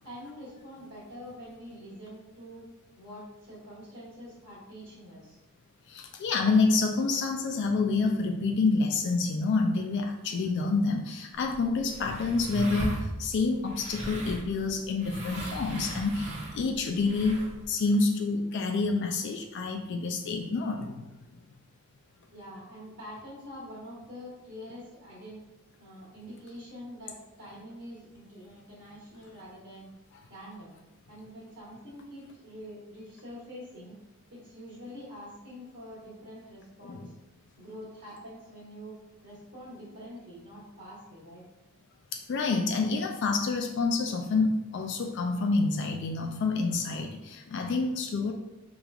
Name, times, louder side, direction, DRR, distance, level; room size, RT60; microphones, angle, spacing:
voice 1, 0.0-2.7 3.0-5.4 22.3-25.4 25.8-29.9 30.3-30.7 31.1-33.9 34.3-37.1 37.6-41.4, equal, 55° right, -8 dB, 1.3 m, -45 dB
voice 2, 5.9-21.1 36.8-37.1 42.1-48.3, left 3 dB, 55° left, 3 dB, 0.3 m, -28 dB
sound 1, 11.3-17.7, right 1 dB, 35° right, 0.9 m, -38 dB
5.0 x 3.0 x 2.3 m, 0.99 s
head